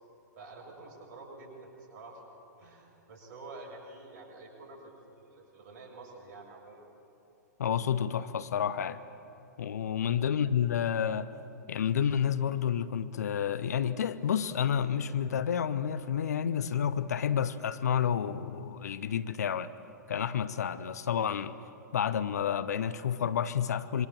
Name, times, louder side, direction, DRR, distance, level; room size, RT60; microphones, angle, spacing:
voice 1, 0.4-2.2 2.6-6.8 10.0-10.1, right 3 dB, 45° right, -1 dB, 7.3 m, -48 dB
voice 2, 7.6-9.0 9.6-11.3 11.7-19.7 20.1-21.5 21.9-24.1, left 8 dB, 60° left, 13 dB, 0.9 m, -30 dB
26.5 x 23.5 x 7.8 m, 2.8 s
figure-of-eight pair, 105°, 10 cm